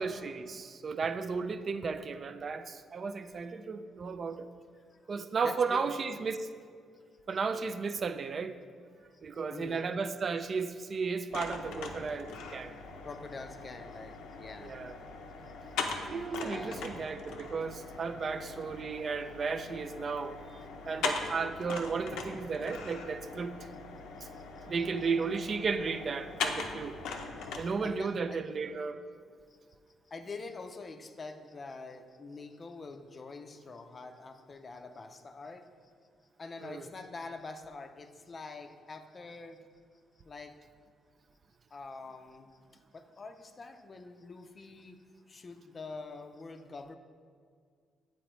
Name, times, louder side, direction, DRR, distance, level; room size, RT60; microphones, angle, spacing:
voice 1, 0.0-4.5 5.1-6.5 7.3-8.6 9.2-12.7 14.6-15.0 16.1-23.6 24.6-27.0 27.6-29.0 36.6-36.8, right 5 dB, 45° right, 10 dB, 0.3 m, -34 dB
voice 2, 5.4-5.8 9.0-9.1 9.5-9.9 13.0-14.8 15.5-15.6 15.9-16.0 16.4-16.9 24.4-25.1 27.4-27.5 27.8-28.4 30.1-35.7 36.4-39.6 40.3-40.6 41.7-42.5 42.9-46.9, left 3 dB, 35° left, 7 dB, 0.4 m, -45 dB
sound 1, 11.3-27.6, left 4 dB, 90° left, 0.5 m, -40 dB
7.7 x 4.1 x 3.0 m, 2.1 s
cardioid pair, 90°, 0 cm